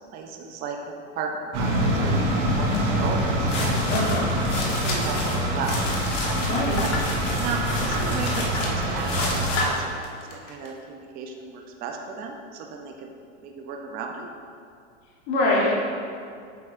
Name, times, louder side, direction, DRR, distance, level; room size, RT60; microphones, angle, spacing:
voice 1, 0.1-3.8 4.7-5.8 6.8-6.9 7.4-13.1 13.4-14.3, right 5 dB, 25° right, 2 dB, 0.5 m, -34 dB
sound 1, 1.5-9.5, right 1 dB, 45° right, 1.3 m, -25 dB
sound 2, 2.7-2.9 3.3-10.7, left 2 dB, 80° left, 1.4 m, -31 dB
voice 2, 3.9-4.3 6.5-6.8 15.3-15.7, left 2 dB, 50° left, -4 dB, 1.2 m, -23 dB
8.3 x 4.6 x 2.5 m, 2.3 s
supercardioid pair, 135°, 37 cm